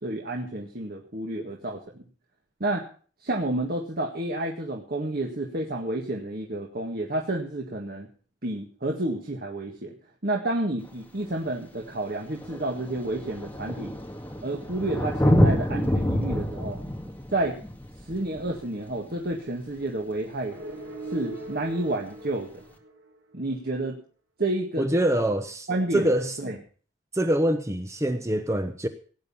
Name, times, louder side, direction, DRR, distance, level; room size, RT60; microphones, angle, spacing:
voice 1, 0.0-2.0 2.6-2.8 3.2-8.1 8.4-9.9 10.2-13.9 14.4-16.8 17.3-17.6 18.1-20.6 21.1-22.5 23.3-24.0 24.4-24.9 25.7-26.1 26.4-26.5, right 1 dB, 55° right, 1.8 m, -30 dB
Thunder, 10.9-11.0 11.9-12.0 12.2-19.6 21.2-21.3, equal, 10° left, 2.1 m, -27 dB
sound 1, 20.5-23.4, right 3 dB, 75° right, 3.4 m, -40 dB
voice 2, 24.8-26.4 27.1-28.9, right 1 dB, 15° right, 0.9 m, -25 dB
17.5 x 9.5 x 5.6 m
head